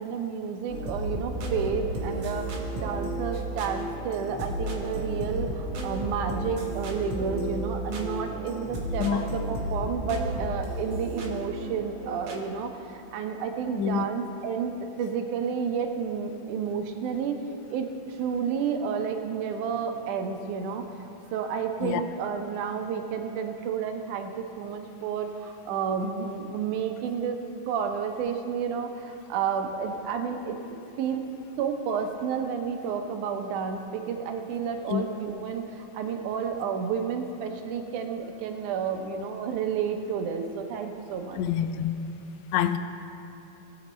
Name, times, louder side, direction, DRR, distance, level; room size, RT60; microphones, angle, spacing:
voice 1, 0.0-17.4 17.7-21.1 21.3-31.3 31.6-41.4, right 6 dB, 80° right, 5 dB, 2.3 m, -31 dB
sound 1, 0.7-12.4, right 1 dB, 60° right, 1.3 m, -33 dB
voice 2, 41.4-41.9 42.5-42.8, left 9 dB, 80° left, 9 dB, 1.7 m, -26 dB
18.5 x 6.5 x 4.2 m, 2.9 s
omnidirectional pair, 3.5 m